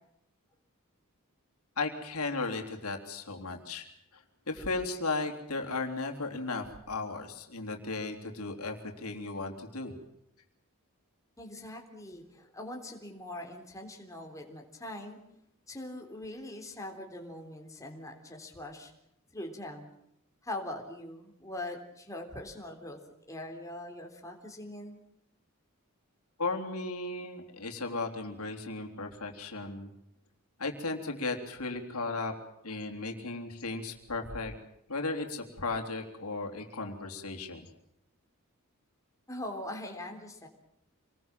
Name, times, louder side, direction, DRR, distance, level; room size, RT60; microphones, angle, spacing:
voice 1, 1.8-9.9 26.4-29.9 30.6-32.3 32.6-34.5 34.9-37.6, left 3 dB, 80° left, 3 dB, 3.5 m, -35 dB
voice 2, 11.4-15.2 15.7-18.9 19.3-19.9 20.4-23.0 23.3-25.0 39.3-40.5, left 1 dB, 15° left, 2 dB, 3.6 m, -42 dB
27.5 x 20.5 x 7.5 m, 0.78 s
head